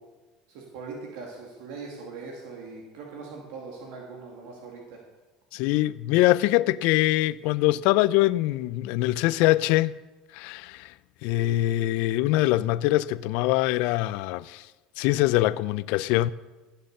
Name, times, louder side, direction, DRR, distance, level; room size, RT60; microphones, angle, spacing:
voice 1, 0.5-5.0, right 4 dB, 80° right, 2.3 m, -41 dB
voice 2, 5.5-9.9 10.3-10.9 11.2-14.7 15.0-16.3, left 16 dB, 75° left, 0.4 m, -23 dB
15.0 x 6.7 x 6.6 m
supercardioid pair, 115°, 2 cm